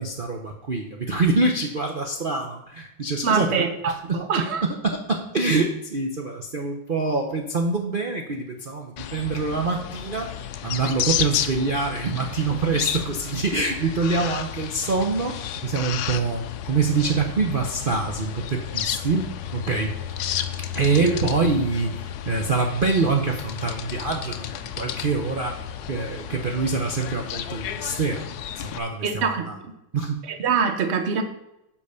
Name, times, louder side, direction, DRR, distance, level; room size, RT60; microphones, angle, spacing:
voice 1, 0.0-3.7 4.1-4.2 4.8-19.3 19.5-19.9 20.7-25.6 25.9-28.2 28.6-29.5 29.9-30.2, right 3 dB, 85° right, 2 dB, 0.4 m, -25 dB
voice 2, 3.2-4.6 21.0-21.1 29.0-29.5 30.3-31.2, right 6 dB, 45° right, 7 dB, 0.9 m, -24 dB
sound 1, 9.0-28.8, left 10 dB, 70° left, 0.9 m, -32 dB
8.4 x 5.2 x 6.9 m, 0.86 s
omnidirectional pair, 2.2 m